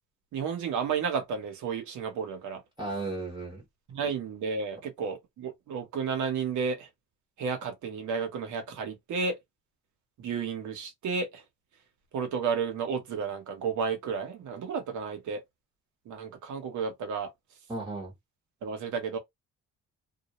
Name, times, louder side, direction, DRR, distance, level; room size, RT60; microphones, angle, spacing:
voice 1, 0.3-2.6 3.9-6.9 7.4-9.4 10.2-11.4 12.1-15.4 16.1-17.3 18.6-19.2, right 5 dB, 75° right, 0.9 m, -32 dB
voice 2, 2.8-3.6 17.7-18.1, right 2 dB, 15° right, 0.9 m, -35 dB
2.3 x 2.1 x 3.0 m
cardioid pair, 90°, 30 cm